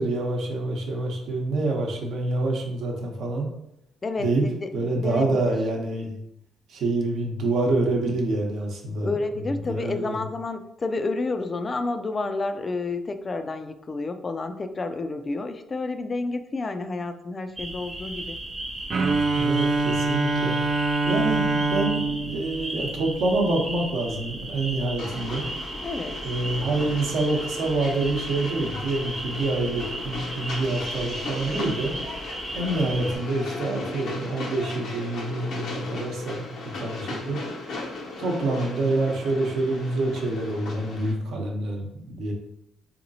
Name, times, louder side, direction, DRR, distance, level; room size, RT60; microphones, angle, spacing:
voice 1, 0.0-3.5 4.2-4.5 4.7-6.2 6.7-9.2 9.6-10.2 19.3-20.5 21.0-25.5 26.2-31.9 32.5-36.4 36.7-37.4 38.2-42.3, right 2 dB, 75° right, 1 dB, 0.8 m, -27 dB
voice 2, 4.0-5.5 9.0-18.4 25.8-26.2, left 3 dB, 35° left, 9 dB, 0.3 m, -30 dB
sound 1, 17.6-33.1, right 1 dB, 10° right, 0.6 m, -35 dB
Bowed string instrument, 18.9-23.7, right 3 dB, 55° right, 0.4 m, -25 dB
Train, 25.0-41.1, left 3 dB, 75° left, 0.7 m, -37 dB
3.8 x 2.9 x 2.7 m, 0.82 s
cardioid pair, 90°, 0 cm